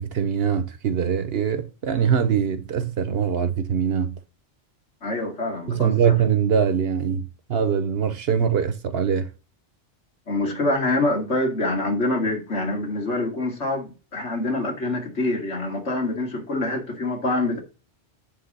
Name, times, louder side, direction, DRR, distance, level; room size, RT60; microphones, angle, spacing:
voice 1, 0.0-4.2 5.7-9.3, right 7 dB, 65° right, 0.9 m, -23 dB
voice 2, 5.0-6.2 10.3-17.6, left 2 dB, 90° left, 2.6 m, -25 dB
9.4 x 3.5 x 6.5 m
omnidirectional pair, 1.2 m